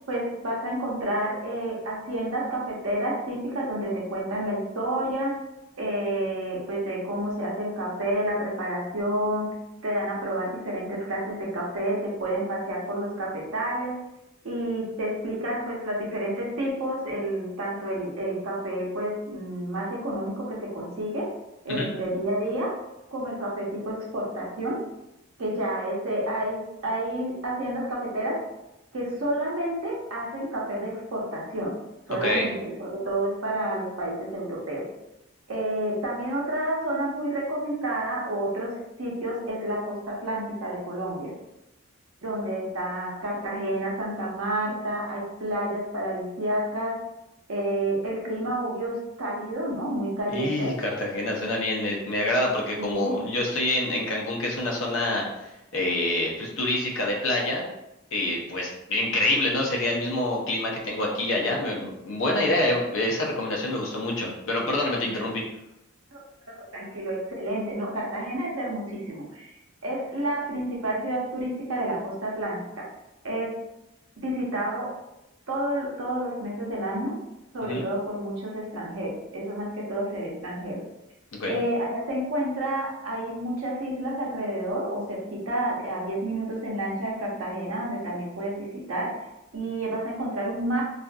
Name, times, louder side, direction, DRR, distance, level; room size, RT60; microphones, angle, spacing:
voice 1, 0.1-5.4 5.8-9.5 9.8-14.0 14.4-21.3 21.6-22.7 23.1-24.8 25.4-28.4 28.9-31.8 32.1-34.9 35.5-41.3 42.2-47.0 47.5-50.7 52.8-53.1 66.1-66.2 66.5-69.5 69.8-72.8 73.2-73.6 74.2-74.9 75.5-77.1 77.5-80.8 81.5-89.1 89.5-90.8, right 1 dB, 85° right, -3 dB, 0.7 m, -30 dB
voice 2, 50.3-57.6 58.1-65.4 77.6-77.8 81.3-81.5, left 1 dB, 75° left, -1 dB, 0.6 m, -26 dB
2.5 x 2.4 x 2.2 m, 0.92 s
head